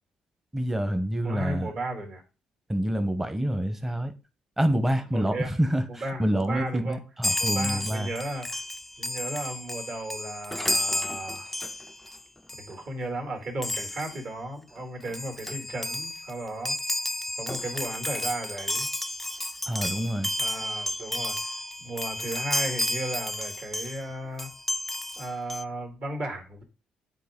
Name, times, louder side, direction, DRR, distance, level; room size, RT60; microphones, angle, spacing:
voice 1, 0.5-1.7 2.7-4.1 4.6-8.1 19.7-20.3, equal, 10° right, 0.9 m, -27 dB
voice 2, 1.2-2.2 5.1-5.5 5.9-7.0 7.4-8.6 9.0-11.5 12.6-16.8 17.4-18.9 20.4-21.5 21.8-24.5 25.2-26.6, right 1 dB, 55° right, 2.4 m, -35 dB
Chime, 7.2-12.2 12.5-12.7 13.6-14.2 14.8-14.9 15.0-24.0 24.4-25.6, left 1 dB, 5° left, 0.3 m, -32 dB
9.2 x 3.9 x 3.7 m
cardioid pair, 100°, 2 cm